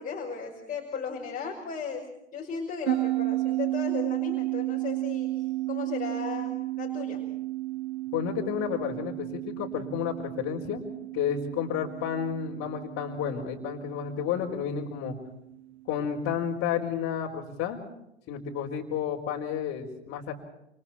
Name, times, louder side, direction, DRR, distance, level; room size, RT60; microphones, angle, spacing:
voice 1, 0.0-7.2, left 5 dB, 25° left, 0 dB, 5.7 m, -36 dB
sound 1, 2.9-15.6, right 18 dB, 70° right, 0.9 m, -33 dB
voice 2, 8.1-15.1 15.9-17.8 18.3-20.3, left 8 dB, 40° left, -3 dB, 4.7 m, -31 dB
29.0 x 29.0 x 4.5 m, 0.86 s
hypercardioid pair, 90°, 34 cm